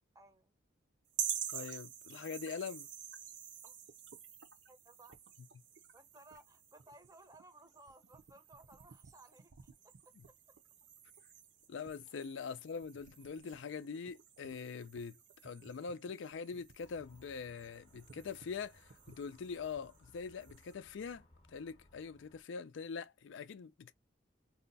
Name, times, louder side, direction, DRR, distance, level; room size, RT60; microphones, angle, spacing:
voice 1, 0.1-0.5 3.6-3.8 4.7-5.2 5.9-9.9, right 2 dB, 15° right, 0.6 m, -60 dB
sound 1, 1.1-20.7, right 8 dB, 70° right, 0.6 m, -48 dB
voice 2, 1.5-2.9 10.2-10.3 11.7-23.9, left 5 dB, 80° left, 0.4 m, -43 dB
Motor vehicle (road) / Siren, 16.8-22.4, left 1 dB, 30° left, 0.8 m, -65 dB
2.7 x 2.2 x 4.0 m
head